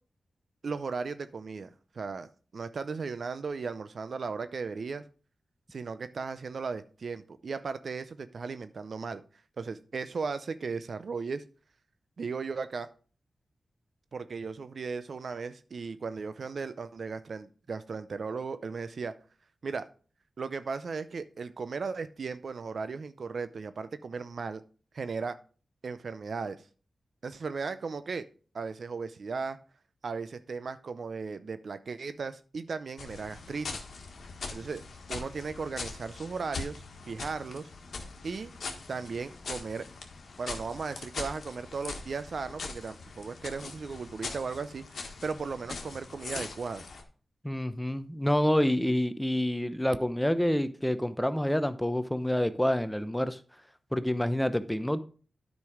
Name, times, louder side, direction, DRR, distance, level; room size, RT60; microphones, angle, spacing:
voice 1, 0.6-5.0 5.7-9.2 9.6-11.4 12.2-12.9 14.1-19.2 19.6-19.9 20.4-24.6 24.9-25.4 25.8-26.6 27.2-28.3 28.5-29.6 30.0-33.8 34.5-34.8 35.1-37.7 38.2-38.5 38.9-39.9 40.4-46.8, right 4 dB, 70° right, 12 dB, 0.6 m, -36 dB
sound 1, 33.0-47.0, left 4 dB, 75° left, 1.5 m, -42 dB
voice 2, 47.4-53.4 53.9-55.0, left 1 dB, 5° left, 12 dB, 0.8 m, -27 dB
9.5 x 5.3 x 4.9 m, 0.40 s
cardioid pair, 60°, 0 cm